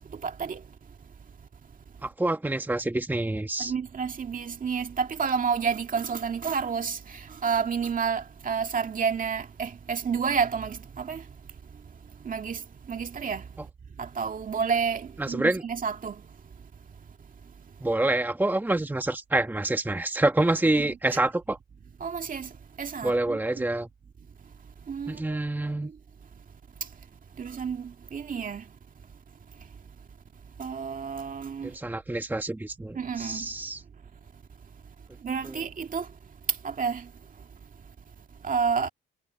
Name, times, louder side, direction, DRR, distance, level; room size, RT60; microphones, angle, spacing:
voice 1, 0.1-0.6 3.6-11.2 12.2-12.6 12.9-13.4 14.0-16.2 20.8-21.0 22.0-22.5 22.8-23.6 24.9-25.4 27.4-28.6 30.6-31.7 32.9-33.5 35.2-36.1 36.6-37.1 38.4-38.9, right 6 dB, 45° right, 2.2 m, -30 dB
voice 2, 2.0-3.7 15.2-15.6 17.8-21.6 23.0-23.9 25.1-25.9 31.6-33.8 35.4-35.6, right 2 dB, 10° right, 1.4 m, -27 dB
cardioid pair, 90°, 20 cm